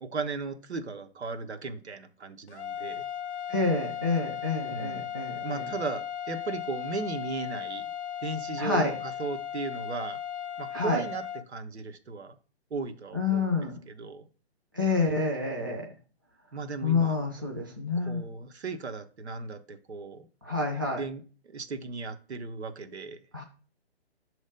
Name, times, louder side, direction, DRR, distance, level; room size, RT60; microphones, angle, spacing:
voice 1, 0.0-3.1 4.7-5.0 5.3-7.8 8.2-10.2 10.6-11.2 11.5-12.4 12.7-13.6 13.9-14.3 16.5-17.1 18.0-20.3 21.0-23.2, right 4 dB, 80° right, 1.1 m, -36 dB
sound 1, 2.5-11.4, left 9 dB, 85° left, 0.6 m, -36 dB
voice 2, 3.5-5.7 8.6-8.9 10.7-11.0 13.1-13.8 14.7-15.9 16.8-18.2 20.4-21.0 23.3-23.4, left 3 dB, 20° right, 0.5 m, -28 dB
6.5 x 3.1 x 5.1 m
hypercardioid pair, 180°, 33 cm